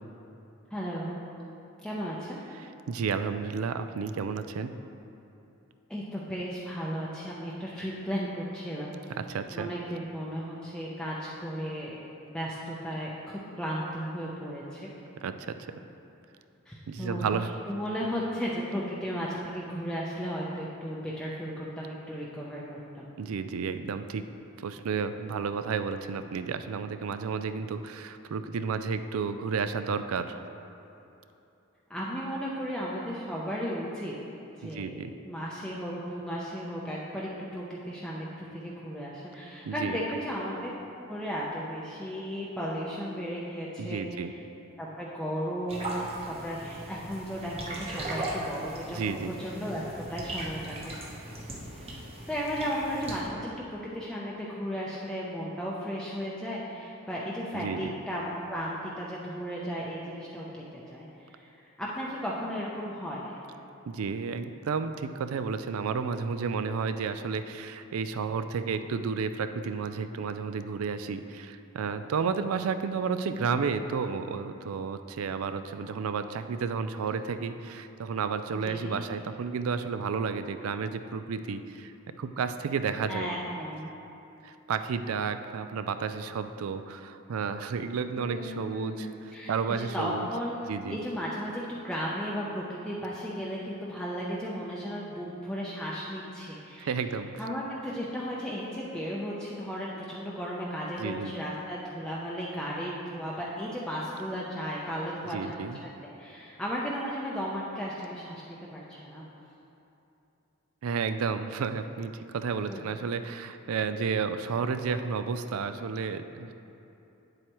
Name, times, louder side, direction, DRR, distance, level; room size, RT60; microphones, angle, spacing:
voice 1, 0.7-1.2 1.8-2.4 5.9-9.1 9.5-12.0 12.3-14.9 16.7-17.3 17.6-23.1 31.9-34.1 34.6-35.0 35.2-40.7 41.1-44.4 44.8-49.0 49.2-50.9 52.3-53.4 53.7-63.4 73.3-73.5 78.6-79.0 83.1-84.0 88.2-97.0 97.4-105.9 106.2-109.2 112.7-112.8, equal, 5° left, -6 dB, 0.5 m, -35 dB
voice 2, 2.9-4.7 9.3-9.7 15.2-15.6 16.9-17.5 23.2-24.2 24.6-30.4 34.6-35.1 39.6-40.0 43.8-44.3 48.9-49.3 57.5-57.9 63.9-83.3 84.4-89.1 89.5-90.3 90.7-91.0 96.8-97.3 101.0-101.3 105.3-105.8 110.8-116.5, right 5 dB, 85° right, 10 dB, 0.4 m, -32 dB
sound 1, 45.7-53.2, right 1 dB, 30° right, 0.9 m, -38 dB
8.7 x 7.8 x 3.0 m, 2.9 s
head